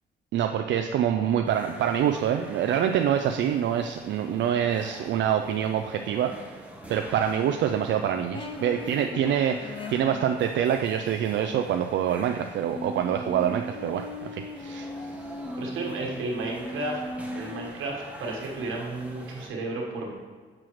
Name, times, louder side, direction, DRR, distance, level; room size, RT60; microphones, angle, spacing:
voice 1, 0.3-6.3 6.9-14.9, right 9 dB, 65° right, 5 dB, 0.4 m, -26 dB
sound 1, 1.4-19.5, right 1 dB, 5° right, 1.0 m, -46 dB
sound 2, 8.3-10.6 12.7-17.7, left 1 dB, 25° left, 0.6 m, -38 dB
voice 2, 15.6-17.0 17.3-20.1, right 2 dB, 85° right, -1 dB, 1.4 m, -33 dB
7.4 x 6.3 x 3.1 m, 1.5 s
cardioid pair, 90°, 20 cm